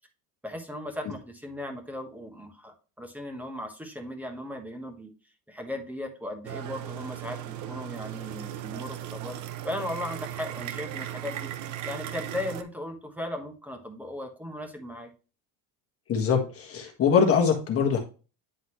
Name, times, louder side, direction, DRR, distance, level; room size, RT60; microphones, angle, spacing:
voice 1, 0.4-5.1 5.5-9.4 9.6-11.5 11.8-15.1, left 1 dB, 5° right, 4 dB, 1.3 m, -37 dB
sound 1, 6.4-12.6, right 12 dB, 45° right, 0.7 m, -37 dB
voice 2, 16.1-18.0, left 6 dB, 35° left, 3 dB, 1.5 m, -23 dB
9.7 x 4.0 x 3.1 m, 0.33 s
cardioid pair, 160°, 42 cm